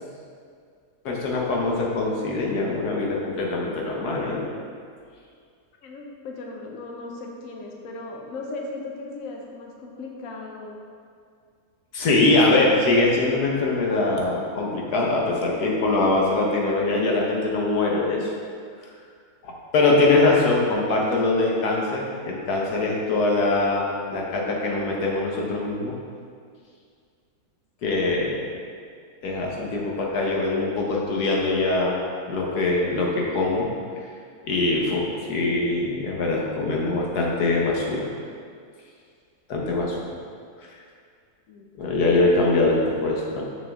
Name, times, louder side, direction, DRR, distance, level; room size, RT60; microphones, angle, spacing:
voice 1, 1.0-4.5 11.9-18.3 19.4-25.9 27.8-28.4 29.2-33.7 34.4-38.1 39.5-40.0 41.8-43.4, left 2 dB, 90° left, -2 dB, 1.6 m, -23 dB
voice 2, 5.8-10.8 41.5-41.7, left 3 dB, 65° left, 0 dB, 1.1 m, -37 dB
6.6 x 6.3 x 3.5 m, 2.2 s
omnidirectional pair, 1.6 m